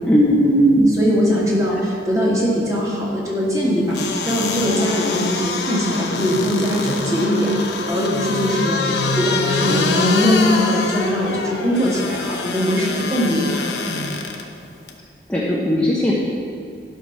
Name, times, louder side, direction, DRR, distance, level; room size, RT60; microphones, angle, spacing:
voice 1, 0.0-0.9 1.7-1.8 15.3-16.2, equal, 5° left, -6 dB, 0.9 m, -17 dB
voice 2, 0.8-13.6 13.9-14.0, equal, 20° right, -5 dB, 2.1 m, -21 dB
sound 1, 3.9-14.4 14.9-15.0, left 3 dB, 75° left, 0.9 m, -23 dB
11.5 x 5.9 x 6.0 m, 2.3 s
head